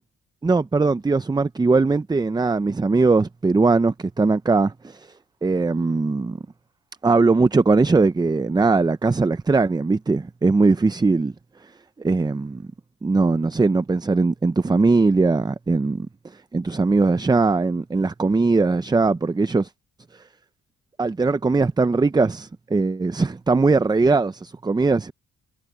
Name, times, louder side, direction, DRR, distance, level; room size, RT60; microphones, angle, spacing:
voice 1, 0.4-5.1 5.4-6.4 7.0-11.3 12.0-12.7 13.0-19.7 20.1-20.2 21.0-25.1, right 3 dB, 15° right, 0.5 m, -20 dB
cardioid pair, 90°, 30 cm